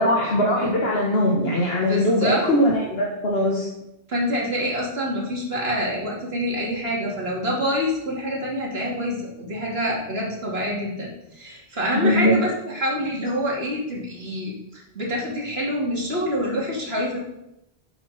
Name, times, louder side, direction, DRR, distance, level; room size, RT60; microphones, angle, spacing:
voice 1, 0.0-3.7 12.0-12.4, left 1 dB, 75° left, -2 dB, 1.8 m, -21 dB
voice 2, 1.8-2.4 4.1-17.2, equal, 75° right, -3 dB, 3.0 m, -26 dB
11.5 x 8.0 x 4.3 m, 0.88 s
omnidirectional pair, 1.0 m